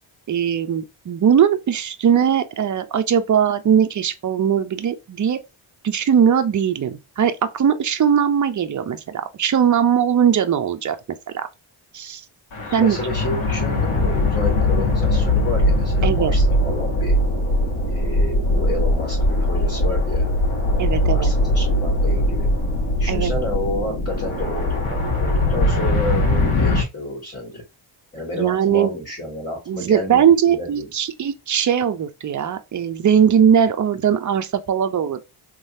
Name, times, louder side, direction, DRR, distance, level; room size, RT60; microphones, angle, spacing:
voice 1, 0.3-5.4 5.8-11.0 11.3-11.5 11.9-12.2 12.7-13.0 16.0-16.3 20.8-21.3 23.1-23.3 28.3-28.9 29.7-35.2, right 8 dB, 40° right, 0.5 m, -19 dB
sound 1, 12.5-26.8, left 1 dB, 70° left, 1.9 m, -20 dB
voice 2, 12.6-17.2 17.9-20.2 21.0-22.5 23.0-24.9 25.2-27.6 28.1-30.9, left 1 dB, 20° left, 2.2 m, -30 dB
3.8 x 3.1 x 2.6 m
wide cardioid pair, 125°, 50 cm